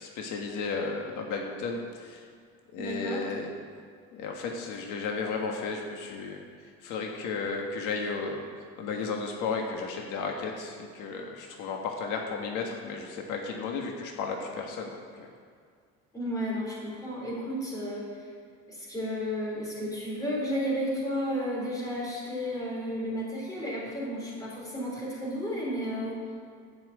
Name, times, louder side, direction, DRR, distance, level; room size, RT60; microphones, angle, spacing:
voice 1, 0.0-2.2 2.7-3.5 4.1-6.4 6.8-8.4 8.8-15.3, left 4 dB, 75° left, 1 dB, 1.5 m, -34 dB
voice 2, 2.8-3.3 16.1-18.3 18.7-26.2, equal, 10° left, -4 dB, 3.3 m, -33 dB
12.5 x 5.9 x 8.4 m, 2.1 s
cardioid pair, 175°, 31 cm